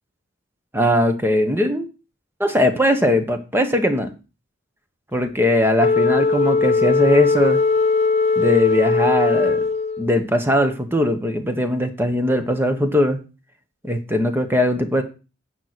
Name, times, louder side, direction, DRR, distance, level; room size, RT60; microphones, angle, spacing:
voice 1, 0.7-1.9 2.4-4.1 5.1-7.6 8.4-9.6 10.0-13.2 13.8-15.0, left 1 dB, 10° right, 7 dB, 1.2 m, -20 dB
Wind instrument woodwind instrument, 5.8-10.1, left 4 dB, 30° left, 0.5 m, -19 dB
9.2 x 6.3 x 6.1 m, 0.32 s
head